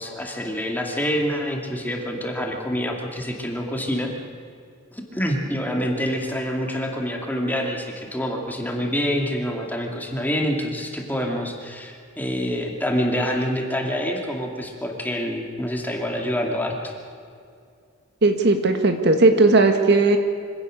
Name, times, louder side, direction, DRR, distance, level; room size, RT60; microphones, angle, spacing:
voice 1, 0.0-4.1 4.9-16.9, equal, 10° left, 1 dB, 2.5 m, -26 dB
voice 2, 18.2-20.2, right 3 dB, 55° right, 6 dB, 1.6 m, -17 dB
25.0 x 17.0 x 6.5 m, 2.3 s
head